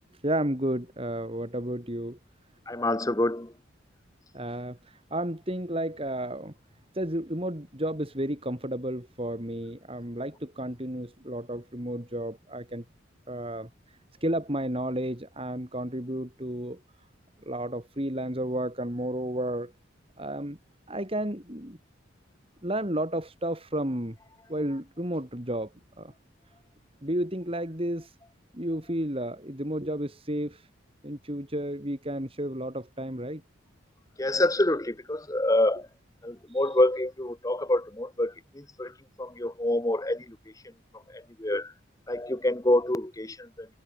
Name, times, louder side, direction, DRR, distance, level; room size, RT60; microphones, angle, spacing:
voice 1, 0.2-2.2 4.3-6.5 6.9-12.8 13.3-13.7 14.2-16.8 17.5-19.7 20.2-20.6 20.9-21.8 22.6-24.2 24.5-25.7 26.0-26.1 27.0-28.1 28.5-30.6 31.0-33.4 36.5-36.6, right 1 dB, 30° right, 4.1 m, -32 dB
voice 2, 2.7-3.5 34.2-35.9 36.2-40.4 41.1-41.7 42.1-43.7, left 1 dB, 15° left, 1.0 m, -27 dB
head